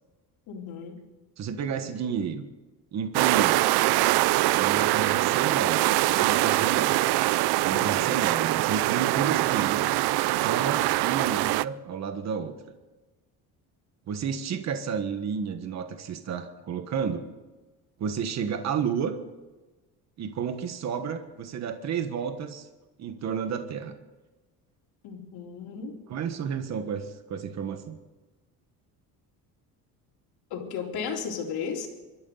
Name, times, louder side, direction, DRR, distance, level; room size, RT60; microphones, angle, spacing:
voice 1, 0.5-1.0 7.7-8.2 25.0-26.0 30.5-31.9, left 6 dB, 70° left, 1 dB, 3.8 m, -35 dB
voice 2, 1.4-2.4 2.9-3.6 4.5-7.0 7.6-9.9 10.4-12.5 14.1-17.3 18.0-19.1 20.2-22.7 23.0-23.9 26.1-28.0, right 7 dB, 40° right, 7 dB, 1.4 m, -31 dB
sound 1, 3.1-11.6, right 18 dB, 75° right, 0.6 m, -23 dB
26.0 x 13.5 x 4.0 m, 1.2 s
cardioid pair, 155°, 39 cm